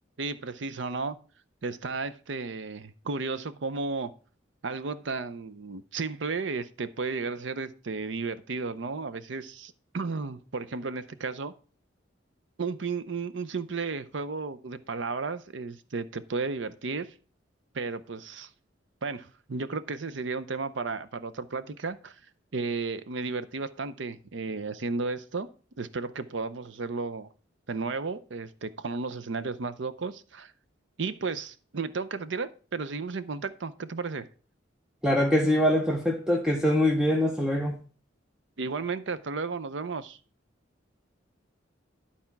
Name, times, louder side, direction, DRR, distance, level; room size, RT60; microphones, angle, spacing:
voice 1, 0.2-1.2 1.6-4.1 4.6-11.5 12.6-17.1 17.7-18.5 19.0-22.2 22.5-25.5 25.8-27.3 27.7-30.5 31.0-34.3 38.6-40.2, right 4 dB, 70° right, 0.6 m, -33 dB
voice 2, 35.0-37.8, left 1 dB, 5° right, 0.7 m, -24 dB
11.0 x 4.3 x 5.8 m
head